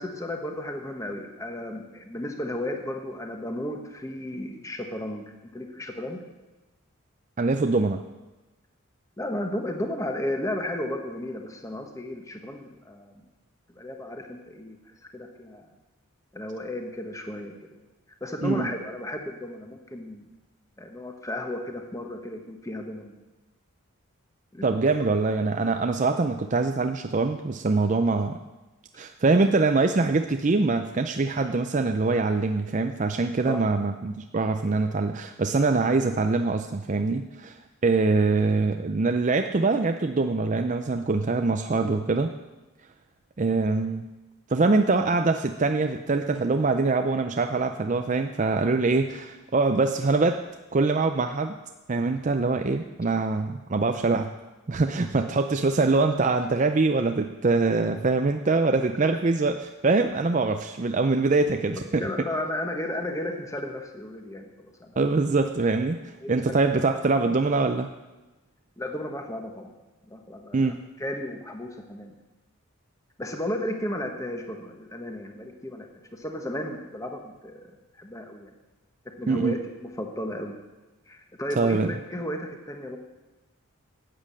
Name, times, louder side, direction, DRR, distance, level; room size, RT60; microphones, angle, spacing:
voice 1, 0.0-5.2 5.5-6.2 9.2-13.2 13.7-14.8 15.1-15.6 16.3-17.5 18.2-20.2 20.8-23.1 24.5-24.7 33.4-33.6 62.0-65.0 66.2-66.6 68.8-69.7 70.1-70.7 71.0-72.2 73.2-78.5 79.2-80.5 81.1-83.0, left 1 dB, 15° left, 3 dB, 1.2 m, -34 dB
voice 2, 7.4-8.0 18.4-18.7 24.6-28.4 29.0-37.6 37.8-42.3 43.4-44.1 44.5-50.4 50.7-51.6 51.9-54.3 54.7-59.6 59.8-62.1 65.0-67.9 70.5-70.8 79.3-79.6 81.6-81.9, right 3 dB, 35° right, 6 dB, 0.5 m, -24 dB
12.5 x 8.7 x 7.5 m, 1.1 s
head